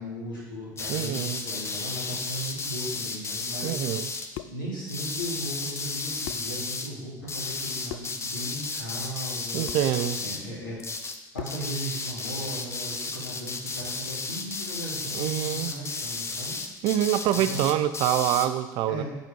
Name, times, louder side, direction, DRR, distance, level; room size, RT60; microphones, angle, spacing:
voice 1, 0.0-3.7 4.3-9.7 10.2-10.8 11.3-16.9 17.3-17.7 18.9-19.0, right 1 dB, 90° left, -8 dB, 2.8 m, -37 dB
sound 1, 0.8-4.3 4.9-6.9 7.3-10.5 10.8-11.2 11.5-18.5, left 4 dB, 25° left, 0.8 m, -33 dB
voice 2, 0.9-1.4 3.6-4.1 9.5-10.2 15.1-15.7 16.8-19.0, right 12 dB, 55° right, 12 dB, 0.5 m, -26 dB
sound 2, 4.3-4.7 5.8-5.9 6.2-6.6 7.9-8.2 9.7-9.9 11.3-11.7, left 13 dB, 55° left, 0.4 m, -40 dB
8.1 x 5.2 x 4.5 m, 1.1 s
figure-of-eight pair, 60°, 10 cm